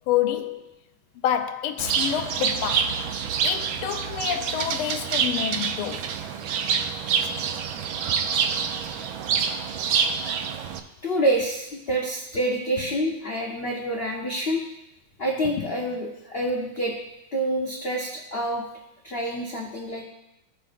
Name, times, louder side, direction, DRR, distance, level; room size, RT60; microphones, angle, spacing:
voice 1, 0.1-0.6 1.2-3.0 3.4-6.1 15.6-15.7, left 10 dB, 80° left, 1.4 m, -28 dB
Bird, 1.8-10.8, right 7 dB, 75° right, 1.3 m, -27 dB
voice 2, 11.0-14.6 15.2-16.9 17.3-18.6 19.0-20.0, right 1 dB, 60° left, 0.6 m, -27 dB
14.0 x 5.2 x 2.5 m
omnidirectional pair, 2.4 m